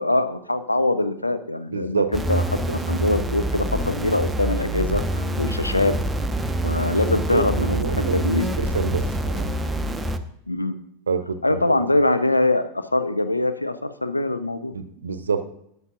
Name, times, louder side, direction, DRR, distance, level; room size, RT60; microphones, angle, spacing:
voice 1, 0.0-2.4 2.7-6.0 6.6-7.9 8.1-8.4 10.5-10.7 11.4-14.7, left 2 dB, 85° left, 11 dB, 0.5 m, -23 dB
voice 2, 1.7-2.1 5.4-5.5 6.8-9.1 9.3-9.5 11.1-11.9 14.7-15.4, right 5 dB, 70° right, 11 dB, 0.6 m, -27 dB
sound 1, 2.1-10.2, right 1 dB, 10° right, 0.6 m, -26 dB
13.0 x 8.0 x 2.5 m, 0.74 s
figure-of-eight pair, 90°, 0 cm